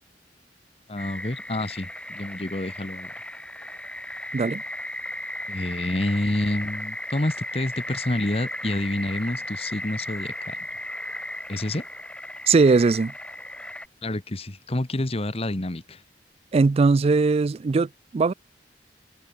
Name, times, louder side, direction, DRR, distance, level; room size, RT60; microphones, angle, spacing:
voice 1, 0.9-3.1 5.5-10.6 11.5-11.9 14.0-16.0, left 1 dB, 35° left, 1.3 m, -28 dB
sound 1, 1.0-13.9, left 1 dB, 5° left, 2.2 m, -36 dB
voice 2, 12.5-13.1 16.5-18.3, right 4 dB, 35° right, 0.3 m, -20 dB
head